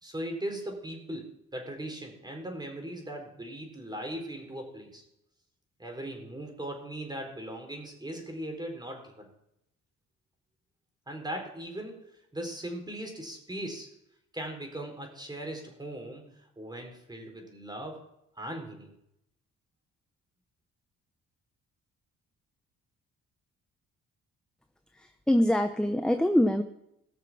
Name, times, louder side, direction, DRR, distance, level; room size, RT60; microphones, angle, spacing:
voice 1, 0.0-5.0 5.8-9.3 11.1-13.9 14.3-18.0 18.4-18.9, right 1 dB, 15° right, 3 dB, 4.2 m, -39 dB
voice 2, 24.9-26.6, left 1 dB, 5° left, 7 dB, 0.8 m, -24 dB
19.0 x 6.7 x 6.1 m, 0.80 s
cardioid pair, 90°, 30 cm